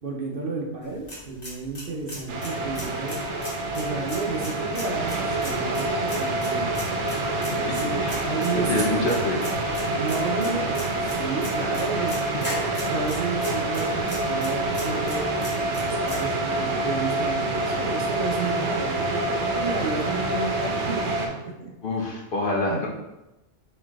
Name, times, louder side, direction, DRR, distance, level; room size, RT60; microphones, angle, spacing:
voice 1, 0.0-3.2 3.7-6.7 7.6-8.8 9.8-12.2 12.9-21.1 21.4-21.7 22.7-22.8, right 4 dB, 55° right, -1 dB, 0.9 m, -32 dB
sound 1, 0.8-16.2, equal, 35° left, 1.4 m, -40 dB
sound 2, 2.3-21.3, right 2 dB, 80° right, 1.0 m, -27 dB
voice 2, 7.7-8.3 8.5-9.4 11.9-12.1 21.8-22.9, left 2 dB, 55° left, -2 dB, 0.9 m, -27 dB
4.2 x 3.2 x 3.5 m, 0.98 s
omnidirectional pair, 1.2 m